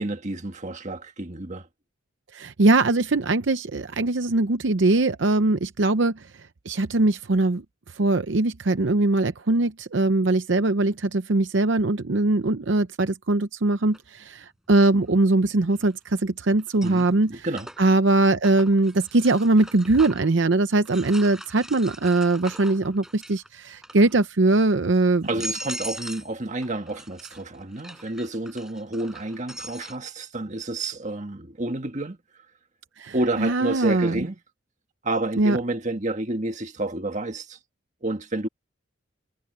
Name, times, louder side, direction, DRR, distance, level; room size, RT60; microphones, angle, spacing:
voice 1, 0.0-1.7 16.8-17.7 25.2-32.2 33.1-34.4 35.0-37.6 38.0-38.5, right 2 dB, 40° right, 1.7 m, -30 dB
voice 2, 2.3-6.1 6.7-7.6 8.0-17.3 17.8-25.3 33.0-34.2 35.4-35.6, right 2 dB, 65° right, 0.7 m, -21 dB
sound 1, 13.9-14.0 15.7-16.2 16.6-20.4 20.9-23.5 23.8-24.3 24.8-24.9 25.2-26.3 26.6-30.0, right 1 dB, 5° right, 5.9 m, -40 dB
head